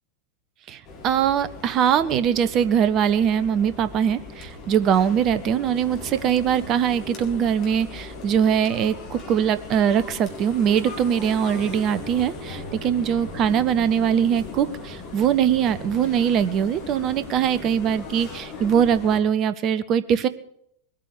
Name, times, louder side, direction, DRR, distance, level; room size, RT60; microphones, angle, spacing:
voice 1, 0.7-20.3, right 8 dB, 35° right, 14 dB, 1.0 m, -22 dB
sound 1, 0.8-19.2, left 3 dB, 35° left, 4.4 m, -38 dB
21.0 x 8.8 x 6.8 m, 0.71 s
figure-of-eight pair, 90°, 0 cm